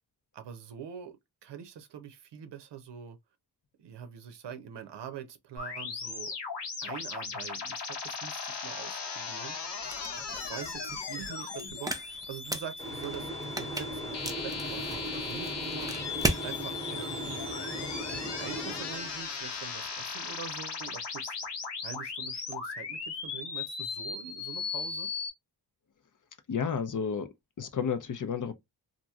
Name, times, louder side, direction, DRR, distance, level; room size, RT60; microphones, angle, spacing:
voice 1, 0.3-1.2 1.4-3.2 3.8-6.3 6.8-9.6 10.3-17.5 18.1-21.4 21.8-25.1, right 8 dB, 85° right, 0.7 m, -44 dB
sound 1, 5.6-25.3, left 5 dB, 85° left, 1.2 m, -37 dB
sound 2, 9.8-16.5, right 1 dB, 10° right, 0.5 m, -37 dB
sound 3, 12.8-19.5, right 1 dB, 10° left, 1.0 m, -39 dB
voice 2, 26.5-27.3 27.6-28.5, left 6 dB, 50° left, 0.5 m, -31 dB
2.9 x 2.6 x 2.3 m
wide cardioid pair, 115°, 41 cm